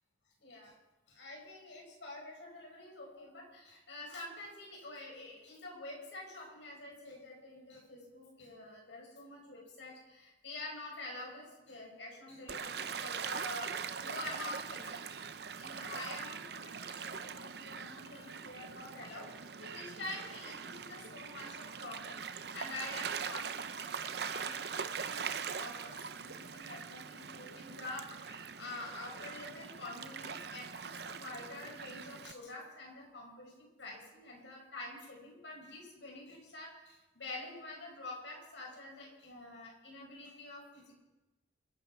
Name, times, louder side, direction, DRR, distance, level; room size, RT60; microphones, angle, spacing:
voice 1, 0.4-0.7 1.1-15.1 15.6-41.0, left 2 dB, 80° left, -1 dB, 6.1 m, -47 dB
Gull seagull / Waves surf, 12.5-32.3, right 6 dB, 60° right, 0.7 m, -42 dB
25.5 x 9.0 x 6.1 m, 1.1 s
head